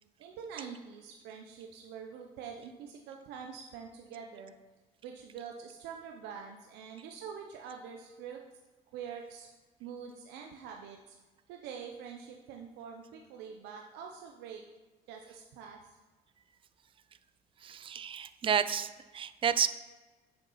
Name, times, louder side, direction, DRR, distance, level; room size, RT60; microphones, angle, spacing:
voice 1, 0.2-4.5 5.0-8.4 8.9-9.5 9.8-11.2 11.5-14.6 15.1-16.0, right 7 dB, 90° right, 2 dB, 0.8 m, -45 dB
voice 2, 17.6-19.7, right 8 dB, 30° right, 12 dB, 0.5 m, -31 dB
7.1 x 7.0 x 5.5 m, 1.3 s
cardioid pair, 110°, 17 cm